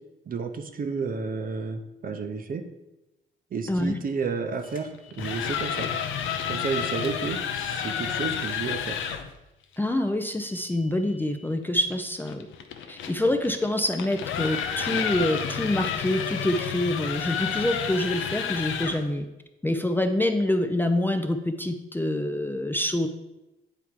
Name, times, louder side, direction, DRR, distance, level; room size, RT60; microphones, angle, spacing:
voice 1, 0.3-2.6 3.5-4.9 5.2-5.9 6.5-9.0, right 5 dB, 45° right, 7 dB, 0.8 m, -31 dB
sound 1, 4.6-5.7 7.3-8.4 10.4-11.5 14.3-15.5 17.3-18.3, left 1 dB, 45° left, 1.2 m, -46 dB
sound 2, 5.0-9.3 11.9-19.1, left 8 dB, 80° left, 0.6 m, -30 dB
voice 2, 9.8-12.5 12.9-19.3 19.6-23.1, left 1 dB, 10° left, 5 dB, 0.5 m, -26 dB
8.6 x 3.5 x 4.7 m, 0.98 s
cardioid pair, 90°, 20 cm